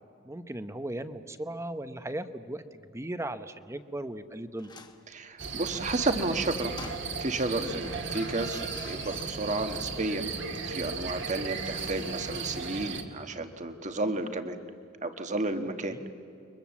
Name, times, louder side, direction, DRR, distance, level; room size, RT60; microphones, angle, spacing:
voice 1, 0.2-4.7 15.9-16.0, right 1 dB, 15° right, 11 dB, 0.8 m, -37 dB
sound 1, 4.6-5.1 6.7-7.4 7.8-10.0 10.3-10.4, left 3 dB, 20° left, 1.2 m, -47 dB
voice 2, 5.1-6.7 7.2-14.6 15.0-16.2, right 2 dB, 35° right, 8 dB, 1.4 m, -32 dB
sound 2, 5.4-13.0, right 4 dB, 60° right, 2.1 m, -36 dB
30.0 x 23.0 x 7.3 m, 2.6 s
head